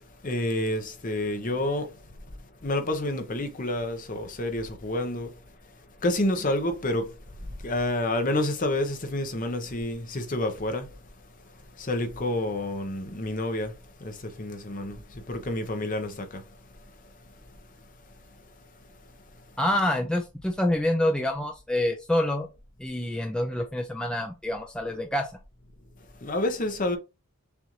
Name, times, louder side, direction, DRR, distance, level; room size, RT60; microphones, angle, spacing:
voice 1, 0.2-2.0 2.6-5.3 6.0-7.1 7.4-10.9 11.8-16.4 26.2-27.0, left 1 dB, 35° left, 0.8 m, -29 dB
voice 2, 19.6-22.5 22.8-25.3, left 1 dB, 5° left, 0.4 m, -27 dB
6.9 x 2.5 x 3.0 m
head